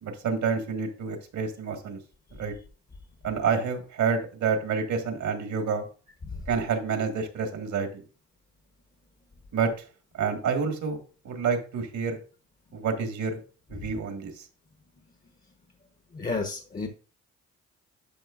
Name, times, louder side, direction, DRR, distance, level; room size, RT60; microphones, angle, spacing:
voice 1, 0.0-2.0 2.4-2.5 3.2-5.9 6.5-7.9 9.5-9.7 10.1-12.2 12.7-13.4 13.7-14.5, right 5 dB, 70° right, 5 dB, 1.9 m, -28 dB
voice 2, 16.1-16.9, left 3 dB, 30° left, 5 dB, 1.1 m, -31 dB
11.0 x 5.3 x 2.5 m, 0.36 s
cardioid pair, 90°, 30 cm